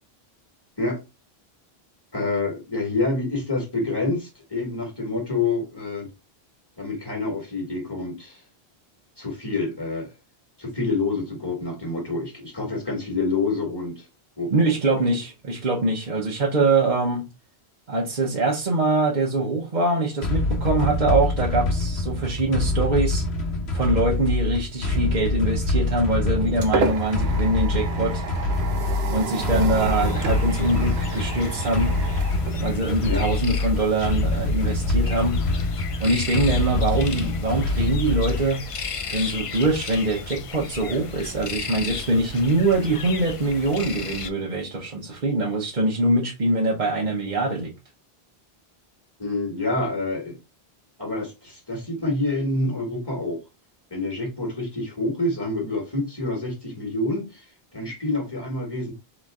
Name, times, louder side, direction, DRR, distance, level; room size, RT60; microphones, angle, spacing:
voice 1, 2.1-6.1 6.8-8.4 9.2-10.1 10.6-14.1 14.4-14.5 33.1-33.2 49.2-50.4 51.0-53.4 53.9-57.4 57.7-58.9, left 2 dB, 25° left, 1.7 m, -27 dB
voice 2, 14.5-17.2 17.9-23.2 23.7-28.3 29.1-32.0 32.6-35.4 36.0-38.6 39.1-47.7, right 2 dB, 50° right, 1.0 m, -23 dB
sound 1, 20.2-38.6, left 2 dB, 85° left, 1.2 m, -25 dB
sound 2, 26.1-33.3, right 4 dB, 75° right, 1.0 m, -31 dB
sound 3, 29.8-44.3, left 5 dB, 45° left, 0.4 m, -35 dB
3.9 x 3.1 x 3.5 m
omnidirectional pair, 1.1 m